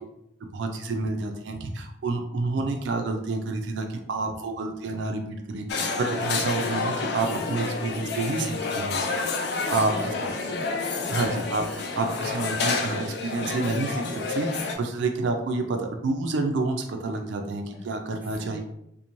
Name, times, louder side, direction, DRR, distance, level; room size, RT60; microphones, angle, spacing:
voice 1, 0.5-9.0 9.7-9.9 11.1-18.6, right 3 dB, 80° right, 4 dB, 0.4 m, -29 dB
sound 1, 5.7-14.7, left 4 dB, 60° left, 0.4 m, -29 dB
voice 2, 9.7-11.2 17.7-17.8 18.4-18.6, equal, 10° right, -3 dB, 0.4 m, -40 dB
2.9 x 2.1 x 2.5 m, 0.79 s
head